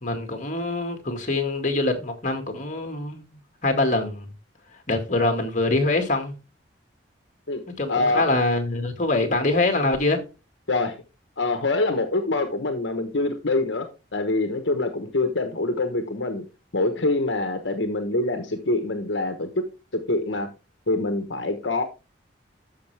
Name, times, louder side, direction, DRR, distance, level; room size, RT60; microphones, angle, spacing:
voice 1, 0.0-4.3 4.7-6.3 7.8-10.2, left 2 dB, 40° left, 2.0 m, -24 dB
voice 2, 7.9-8.2 10.7-10.9 11.4-13.9 14.1-16.5 16.7-19.6 19.9-20.5 20.9-21.8, left 2 dB, 70° left, 1.1 m, -25 dB
13.0 x 5.7 x 3.4 m
head